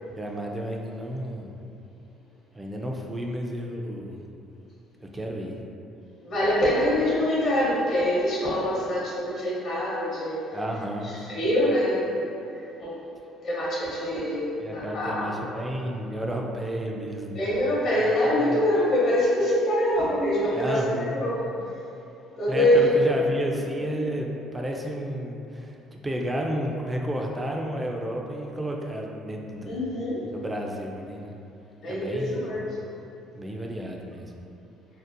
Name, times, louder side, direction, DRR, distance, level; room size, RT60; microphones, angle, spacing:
voice 1, 0.2-1.5 2.5-4.2 5.0-5.6 10.5-11.1 14.6-17.5 18.4-18.5 20.5-21.2 22.5-25.7 26.0-29.8 30.3-31.3 31.9-32.5 33.3-34.3, equal, 20° right, 0 dB, 0.3 m, -32 dB
voice 2, 6.2-10.4 11.0-12.2 12.8-12.9 13.4-15.4 17.3-21.5 22.4-22.8 23.5-23.6 23.9-24.1 29.7-30.2 31.8-32.6, left 1 dB, 55° left, -7 dB, 0.9 m, -25 dB
2.6 x 2.0 x 2.5 m, 2.7 s
supercardioid pair, 70°, 0 cm